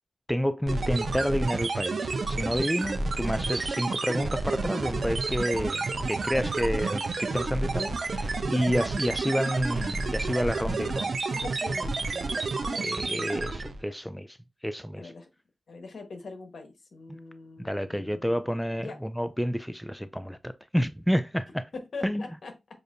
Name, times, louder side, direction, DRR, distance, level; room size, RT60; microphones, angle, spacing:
voice 1, 0.3-11.1 12.8-14.4 14.6-15.1 17.1-17.2 17.6-21.6 22.0-22.2, equal, 5° left, 0.4 m, -29 dB
sound 1, 0.7-13.8, right 3 dB, 65° right, 0.8 m, -30 dB
voice 2, 10.9-13.4 14.9-15.3 15.7-19.0 21.7-22.5, left 3 dB, 70° left, 1.2 m, -43 dB
6.5 x 2.6 x 2.6 m
cardioid pair, 50°, 0 cm